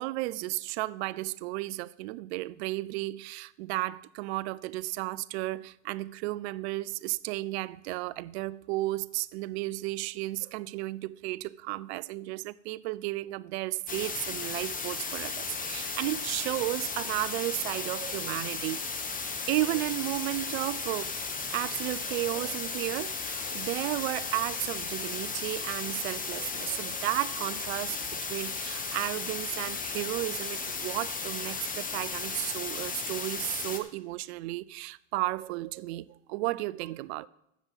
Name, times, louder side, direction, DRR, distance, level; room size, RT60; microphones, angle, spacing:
voice 1, 0.0-18.8 19.5-21.2 21.5-37.3, right 18 dB, 65° right, 0.6 m, -33 dB
sound 1, 13.9-33.8, left 4 dB, 25° left, 1.6 m, -35 dB
14.5 x 5.3 x 7.3 m
hypercardioid pair, 80°, 36 cm